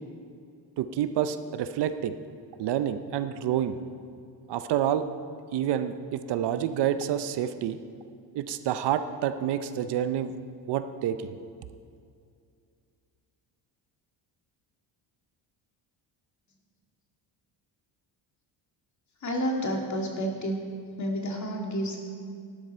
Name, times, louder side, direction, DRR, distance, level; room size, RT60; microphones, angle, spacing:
voice 1, 0.8-2.2 2.6-3.8 4.5-5.1 5.5-7.8 8.3-10.3 10.7-11.4, right 10 dB, 65° right, 11 dB, 0.7 m, -28 dB
voice 2, 19.2-20.6 21.0-22.0, equal, 40° left, 1 dB, 2.1 m, -30 dB
12.5 x 11.5 x 4.4 m, 2.3 s
cardioid pair, 120°, 45 cm